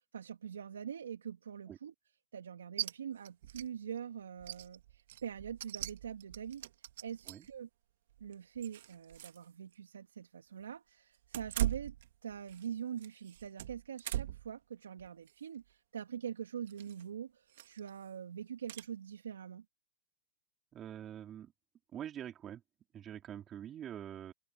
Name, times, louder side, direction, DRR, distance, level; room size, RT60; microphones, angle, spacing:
voice 1, 0.1-1.9 2.3-7.7 8.2-11.9 12.2-19.6, right 8 dB, 90° right, 3.2 m, -44 dB
sound 1, 2.8-2.9 3.2-3.7 4.0-4.1 4.4-7.5 8.1-9.4 9.7-9.8 11.2-12.7 13.0-14.5 15.0-15.3 16.7-17.0 17.5-17.9 18.7-18.9, right 14 dB, 65° right, 2.1 m, -40 dB
voice 2, 20.7-21.5 21.9-22.6 22.9-24.3, right 10 dB, 25° right, 4.5 m, -45 dB
hypercardioid pair, 125°, 0 cm